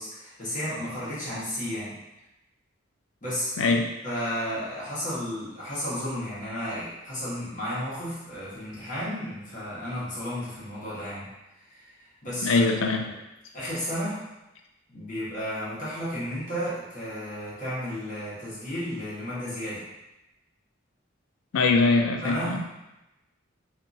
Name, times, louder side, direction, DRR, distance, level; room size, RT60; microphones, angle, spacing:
voice 1, 0.0-2.0 3.2-3.5 4.0-11.3 11.7-11.9 12.2-12.7 13.1-13.2 13.5-14.2 14.9-19.9 22.2-22.8, equal, 40° left, -9 dB, 1.2 m, -33 dB
voice 2, 3.6-3.9 12.4-13.1 21.5-22.6, left 3 dB, 80° left, 4 dB, 0.4 m, -22 dB
2.7 x 2.5 x 2.5 m, 0.96 s
head